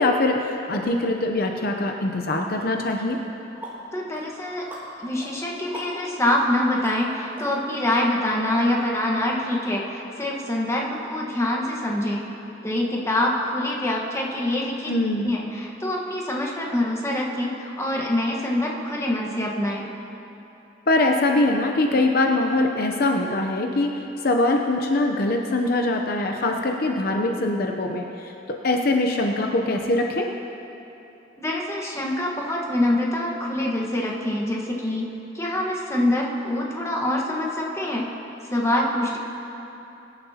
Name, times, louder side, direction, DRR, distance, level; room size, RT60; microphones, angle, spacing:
voice 1, 0.0-3.2 14.9-15.3 20.9-30.3, left 2 dB, 55° left, 2 dB, 0.7 m, -23 dB
sound 1, 2.6-2.7 3.1-8.5, equal, 10° right, 3.1 m, -42 dB
voice 2, 3.9-4.7 5.0-12.2 12.6-14.9 15.2-19.8 31.4-38.1 38.5-39.2, left 1 dB, 15° left, -2 dB, 1.4 m, -25 dB
23.0 x 11.0 x 2.9 m, 3.0 s
head